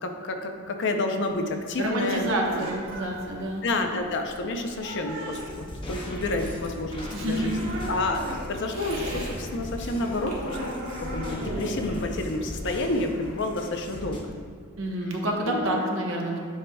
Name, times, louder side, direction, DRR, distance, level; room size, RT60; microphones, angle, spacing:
voice 1, 0.0-2.7 3.6-14.4 15.5-15.8, left 2 dB, 60° left, 4 dB, 0.6 m, -30 dB
sound 1, 1.2-9.3 9.7-13.4, right 1 dB, 90° right, 1.3 m, -38 dB
voice 2, 1.8-3.6 7.1-7.5 14.8-16.4, right 1 dB, 65° right, 0 dB, 1.1 m, -28 dB
sound 2, 5.3-14.2, left 1 dB, 25° left, 0.9 m, -38 dB
9.8 x 5.6 x 2.3 m, 2.2 s
head